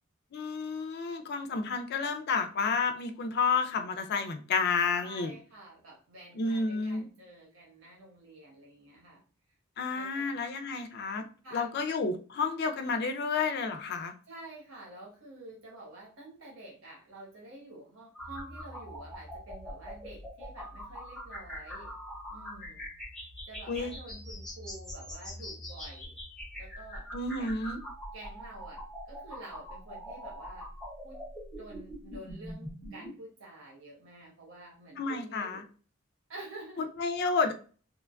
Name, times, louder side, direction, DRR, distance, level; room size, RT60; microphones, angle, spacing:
voice 1, 0.3-5.3 6.4-7.0 9.8-11.2 11.5-14.1 23.7-23.9 27.1-27.8 35.0-35.6 37.0-37.5, left 4 dB, 50° left, 8 dB, 0.3 m, -30 dB
voice 2, 5.0-9.2 9.9-10.3 11.4-11.7 14.3-21.9 22.3-22.9 23.2-26.1 26.6-27.1 27.4-27.7 28.1-30.7 31.0-31.2 31.6-35.6 36.3-36.8, right 2 dB, 70° right, -3 dB, 1.0 m, -49 dB
sound 1, 18.1-33.1, equal, 5° left, 0.6 m, -43 dB
3.0 x 2.2 x 2.4 m, 0.38 s
head